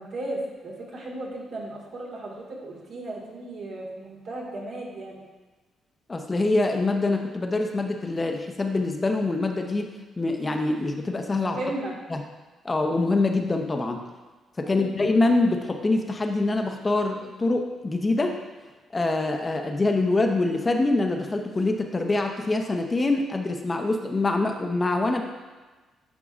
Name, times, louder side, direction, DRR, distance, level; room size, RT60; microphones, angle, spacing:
voice 1, 0.0-5.2 11.4-11.9 14.6-14.9, right 2 dB, 70° right, -3 dB, 2.0 m, -35 dB
voice 2, 6.1-9.9 10.2-11.6 12.1-12.2 12.6-14.0 14.6-18.4 18.9-25.2, left 2 dB, 30° left, 3 dB, 0.8 m, -24 dB
11.0 x 4.7 x 2.5 m, 1.3 s
supercardioid pair, 65°, 0 cm